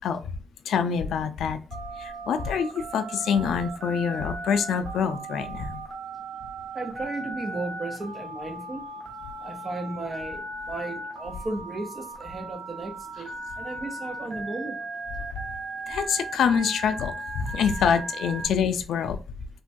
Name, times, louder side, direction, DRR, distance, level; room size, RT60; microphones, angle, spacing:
voice 1, 0.7-1.6 2.0-5.8 15.9-19.2, left 7 dB, 90° left, 0.3 m, -26 dB
Telephone, 1.7-18.5, right 2 dB, 80° right, 0.9 m, -37 dB
voice 2, 6.7-8.8 9.4-14.8, right 2 dB, 30° right, 0.6 m, -35 dB
3.1 x 2.2 x 2.5 m
wide cardioid pair, 135°, 0 cm